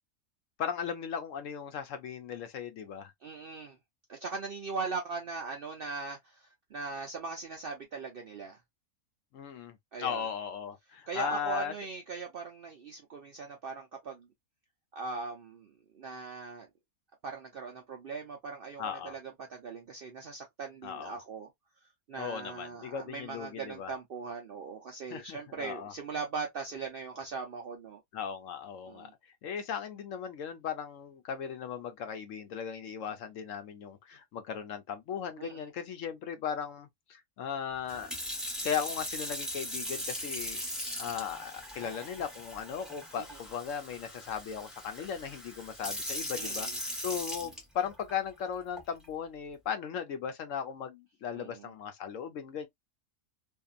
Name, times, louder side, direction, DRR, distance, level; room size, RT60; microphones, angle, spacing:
voice 1, 0.6-3.1 9.3-11.7 18.8-19.1 20.8-21.2 22.2-23.9 25.1-25.9 28.1-29.1 29.4-38.1 38.6-40.6 41.0-52.7, left 7 dB, 70° left, 0.9 m, -37 dB
voice 2, 3.2-3.8 4.1-8.6 9.9-10.3 11.1-14.3 14.9-16.7 17.2-21.5 22.1-28.0 28.9-29.1 35.4-35.6 43.2-43.4 46.3-46.8 51.3-51.7, right 4 dB, 65° right, 0.5 m, -40 dB
Sink (filling or washing) / Fill (with liquid), 37.9-48.1 48.8-49.1, equal, ahead, 0.8 m, -39 dB
2.7 x 2.5 x 2.3 m
omnidirectional pair, 1.5 m